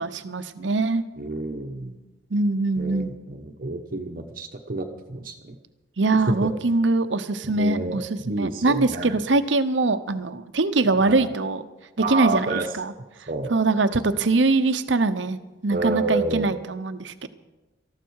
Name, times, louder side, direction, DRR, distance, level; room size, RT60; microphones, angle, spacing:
voice 1, 0.0-1.0 2.3-3.1 6.0-11.6 12.1-12.9 13.5-17.3, right 3 dB, 80° right, 11 dB, 0.9 m, -23 dB
voice 2, 1.2-2.0 2.8-5.6 6.3-6.5 7.4-9.2 11.0-11.3 12.0-12.7 13.3-13.5 15.7-16.5, right 3 dB, 50° right, 4 dB, 1.0 m, -29 dB
19.5 x 14.0 x 4.7 m, 1.1 s
head